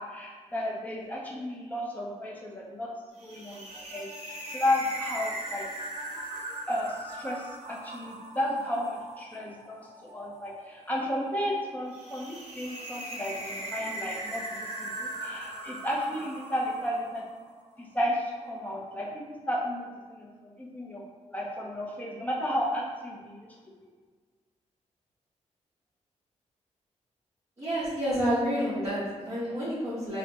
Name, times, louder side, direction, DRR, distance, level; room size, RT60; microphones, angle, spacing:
voice 1, 0.0-2.9 3.2-5.7 6.7-17.2 17.8-21.0 21.3-23.5, left 1 dB, 15° left, -3 dB, 0.6 m, -33 dB
sound 1, 3.2-17.5, right 1 dB, 55° right, 0.9 m, -40 dB
voice 2, 27.6-30.2, equal, 20° right, -13 dB, 1.1 m, -29 dB
5.2 x 2.1 x 2.9 m, 1.5 s
wide cardioid pair, 165°, 13 cm